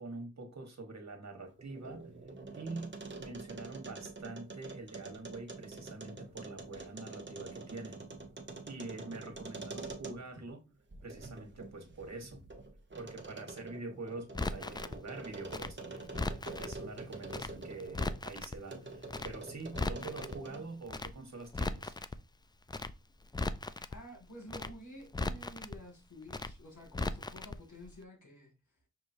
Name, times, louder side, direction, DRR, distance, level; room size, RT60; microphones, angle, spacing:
voice 1, 0.0-2.1 2.5-8.0 8.6-10.6 11.0-12.4 13.0-21.9, right 3 dB, 65° right, 1.5 m, -45 dB
sound 1, 1.5-10.4 10.9-18.2 18.7-20.8, right 3 dB, 40° right, 1.1 m, -46 dB
Crackle, 14.3-15.0 15.5-16.8 17.3-17.5 17.8-18.6 19.1-19.3 19.6-20.4 20.9-21.1 21.4-22.2 22.7-22.9 23.2-24.0 24.5-24.7 25.0-25.8 26.3-26.5 26.8-27.6 27.8-27.9, left 2 dB, 15° left, 0.3 m, -37 dB
voice 2, 23.9-28.5, equal, 80° left, 2.0 m, -51 dB
6.3 x 3.0 x 2.7 m
cardioid pair, 45°, 30 cm